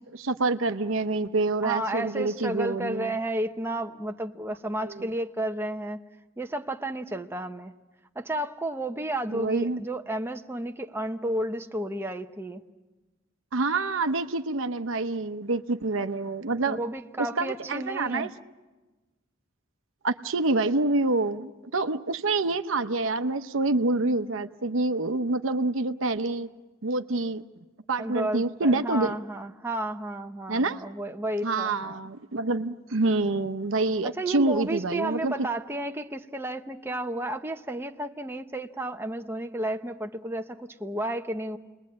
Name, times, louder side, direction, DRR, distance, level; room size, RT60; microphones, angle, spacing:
voice 1, 0.1-3.2 4.8-5.1 9.3-9.8 13.5-16.8 17.2-18.3 20.0-26.5 26.8-27.4 27.9-29.1 30.5-30.8 31.4-35.5, right 2 dB, 70° right, 9 dB, 0.8 m, -27 dB
voice 2, 1.6-6.0 6.4-7.7 8.1-12.6 16.6-18.3 28.0-32.0 34.0-41.6, right 1 dB, 10° right, 4 dB, 0.8 m, -32 dB
29.5 x 21.0 x 8.6 m, 1.2 s
head